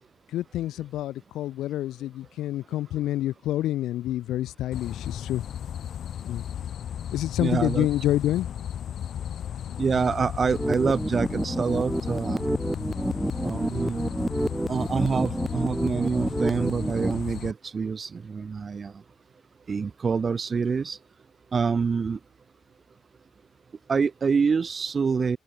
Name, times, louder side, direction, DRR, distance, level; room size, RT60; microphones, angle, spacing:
voice 1, 0.3-5.4 6.3-6.4 7.1-8.5, left 14 dB, 85° left, 0.9 m, -28 dB
sound 1, 4.7-17.5, left 9 dB, 65° left, 4.0 m, -35 dB
voice 2, 7.4-7.9 9.8-12.4 13.4-14.1 14.7-19.0 19.7-21.0 21.5-22.2 23.9-25.4, right 5 dB, 40° right, 2.3 m, -26 dB
sound 2, 10.5-17.2, right 1 dB, 10° right, 0.5 m, -29 dB
cardioid pair, 90°, 0 cm